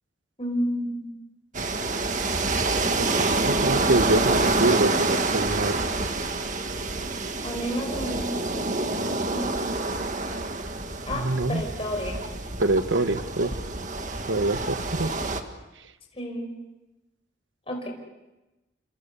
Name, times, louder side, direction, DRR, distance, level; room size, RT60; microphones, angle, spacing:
voice 1, 0.4-1.1 7.4-10.1 11.1-12.2 16.1-16.5 17.7-17.9, equal, 30° left, 2 dB, 5.1 m, -32 dB
sound 1, 1.5-15.4, right 2 dB, 40° right, 1.9 m, -27 dB
voice 2, 3.0-5.8 11.1-11.6 12.6-13.5 14.3-15.1, right 2 dB, 80° right, 11 dB, 1.3 m, -25 dB
29.5 x 27.0 x 6.9 m, 1.0 s
head